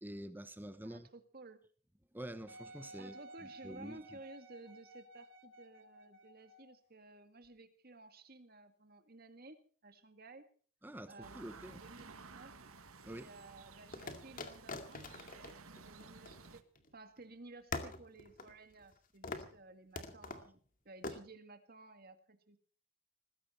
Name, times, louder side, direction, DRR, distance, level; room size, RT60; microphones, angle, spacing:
voice 1, 0.0-1.1 2.1-3.1 3.6-4.0 10.8-11.8 13.0-13.3, right 1 dB, 10° right, 11 dB, 0.9 m, -47 dB
voice 2, 0.8-1.6 3.0-10.5 11.1-12.6 13.1-16.6 16.9-22.6, right 2 dB, 45° right, 8 dB, 2.0 m, -55 dB
Wind instrument woodwind instrument, 2.5-6.8 7.4-7.5, right 1 dB, 60° right, 3.2 m, -55 dB
sound 1, 11.2-16.6, right 4 dB, 90° right, 1.6 m, -55 dB
sound 2, 11.9-12.7 13.9-16.9 17.2-17.3 17.7-19.0 19.2-19.6 20.0-20.5 21.0-21.2, left 3 dB, 40° left, 2.1 m, -45 dB
20.0 x 16.0 x 4.3 m, 0.42 s
head